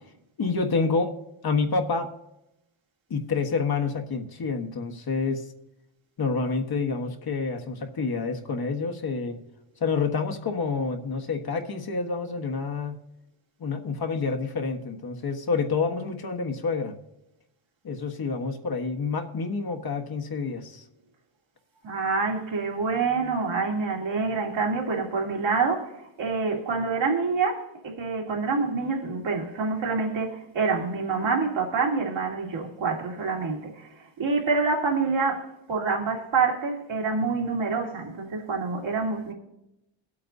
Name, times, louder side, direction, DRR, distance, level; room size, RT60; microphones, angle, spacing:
voice 1, 0.4-1.1 1.4-2.1 3.1-5.5 6.2-9.4 9.8-13.0 13.6-16.9 17.8-20.8, left 4 dB, 45° left, 1.5 m, -28 dB
voice 2, 21.8-39.3, right 4 dB, 65° right, 2.7 m, -27 dB
21.5 x 8.5 x 2.7 m
cardioid pair, 85°, 50 cm